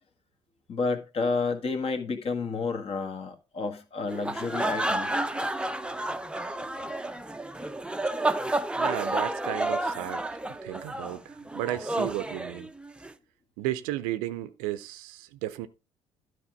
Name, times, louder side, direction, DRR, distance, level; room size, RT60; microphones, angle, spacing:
voice 1, 0.7-5.1, left 4 dB, 40° left, 1.7 m, -30 dB
sound 1, 4.1-13.1, right 2 dB, 5° right, 0.7 m, -31 dB
voice 2, 8.8-10.2 10.6-12.7 13.6-15.7, right 14 dB, 65° right, 0.7 m, -34 dB
12.0 x 4.9 x 5.1 m
figure-of-eight pair, 50°, 16 cm